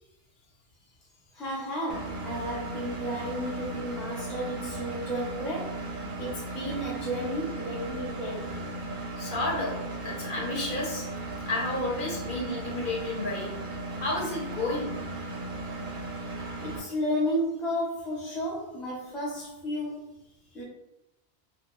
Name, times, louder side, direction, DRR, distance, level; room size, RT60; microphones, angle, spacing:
voice 1, 1.3-5.9 6.2-8.7 16.6-20.2 20.5-20.6, equal, ahead, 0.4 m, -33 dB
Engine, 1.9-16.8, right 2 dB, 60° right, 0.6 m, -36 dB
voice 2, 9.2-9.8 10.0-11.1 11.5-13.5 14.0-14.9, left 2 dB, 55° left, 0.8 m, -31 dB
2.2 x 2.2 x 3.0 m
omnidirectional pair, 1.1 m